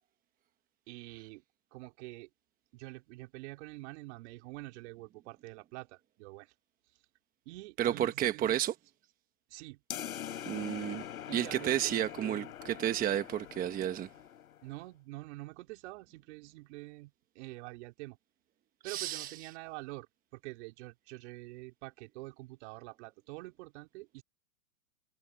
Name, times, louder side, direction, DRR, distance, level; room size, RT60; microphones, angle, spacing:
voice 1, 0.9-1.4 1.7-2.3 2.7-6.5 7.4-8.6 9.5-9.8 11.3-12.5 14.6-18.2 18.8-24.2, right 22 dB, 55° right, 3.1 m, -46 dB
voice 2, 7.8-8.7 10.5-11.0 11.3-14.1 18.8-19.3, right 11 dB, 20° right, 1.0 m, -31 dB
sound 1, 9.9-14.8, left 10 dB, 85° left, 4.9 m, -43 dB
hypercardioid pair, 135°, 41 cm